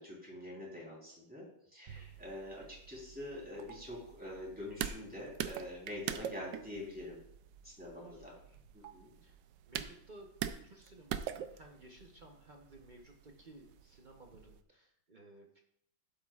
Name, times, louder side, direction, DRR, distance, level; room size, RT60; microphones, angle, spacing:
voice 1, 0.0-7.2 7.6-8.3 8.7-9.2, left 1 dB, 5° right, -4 dB, 3.4 m, -45 dB
voice 2, 1.9-2.3 7.9-8.6 9.2-9.4 9.7-10.3 10.6-15.6, right 2 dB, 55° right, 1 dB, 0.5 m, -57 dB
sound 1, 1.9-14.6, right 10 dB, 75° right, 1.1 m, -45 dB
12.0 x 8.7 x 2.4 m, 0.71 s
omnidirectional pair, 2.3 m